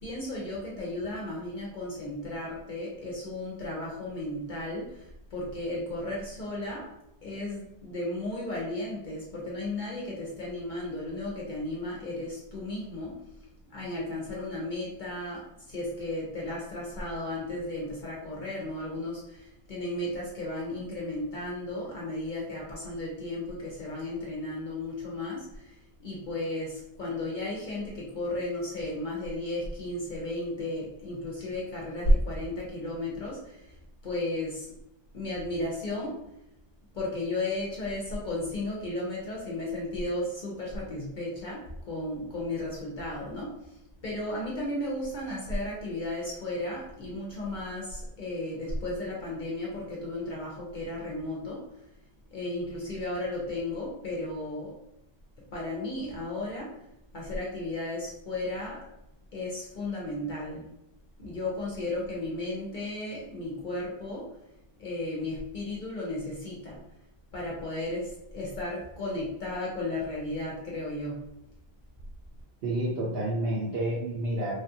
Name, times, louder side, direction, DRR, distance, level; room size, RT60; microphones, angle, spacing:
voice 1, 0.0-6.9 7.2-13.1 13.7-33.8 34.0-34.7 35.1-36.1 36.9-51.6 52.3-54.7 55.5-56.7 57.1-58.8 59.3-60.7 61.2-64.3 64.8-66.8 67.3-71.2, left 1 dB, 55° left, -4 dB, 0.7 m, -34 dB
voice 2, 72.6-74.5, right 1 dB, 75° right, -5 dB, 0.9 m, -29 dB
3.2 x 2.3 x 2.7 m, 0.85 s
omnidirectional pair, 1.1 m